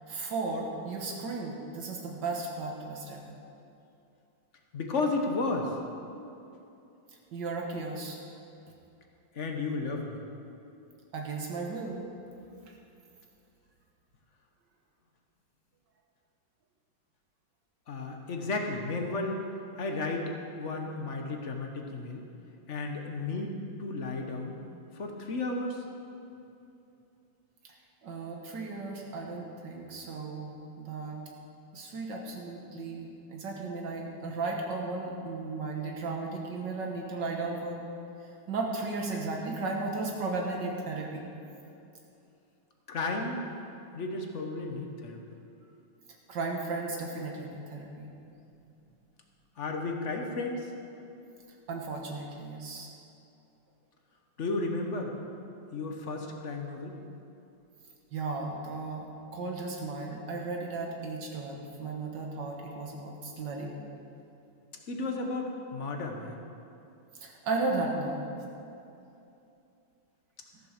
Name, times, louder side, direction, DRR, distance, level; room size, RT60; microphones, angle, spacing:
voice 1, 0.1-3.4 7.3-8.2 11.1-12.0 28.0-31.2 31.7-37.8 38.2-41.3 46.3-48.1 51.7-52.9 58.1-59.1 59.3-63.8 67.2-68.3, right 3 dB, 75° right, 0 dB, 1.8 m, -35 dB
voice 2, 4.7-5.8 9.3-10.2 17.9-19.4 19.8-22.2 22.7-24.6 24.9-25.8 42.9-43.4 43.9-45.2 49.6-50.7 54.4-55.1 55.7-57.0 64.9-66.4, left 3 dB, 45° left, 3 dB, 1.2 m, -33 dB
14.0 x 6.9 x 6.5 m, 2.7 s
omnidirectional pair, 2.0 m